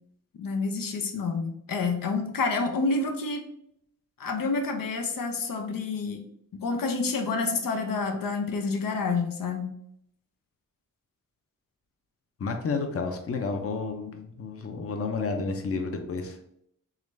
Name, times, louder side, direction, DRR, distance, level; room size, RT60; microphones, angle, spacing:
voice 1, 0.4-3.4 4.2-6.2 6.6-9.7, left 4 dB, 90° left, 4 dB, 0.6 m, -28 dB
voice 2, 12.4-16.4, left 4 dB, 45° left, 4 dB, 0.6 m, -31 dB
3.7 x 3.1 x 3.2 m, 0.72 s
wide cardioid pair, 105°, 33 cm